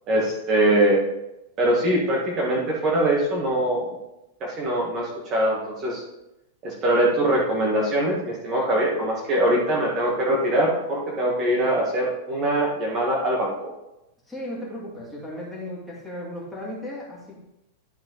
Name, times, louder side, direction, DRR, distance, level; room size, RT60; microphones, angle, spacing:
voice 1, 0.1-1.0 1.6-3.9 4.4-6.0 6.6-13.7, right 1 dB, 25° right, -3 dB, 1.5 m, -22 dB
voice 2, 14.3-17.3, left 1 dB, 5° left, -6 dB, 2.4 m, -35 dB
12.0 x 4.3 x 4.0 m, 0.90 s
supercardioid pair, 165°, 0 cm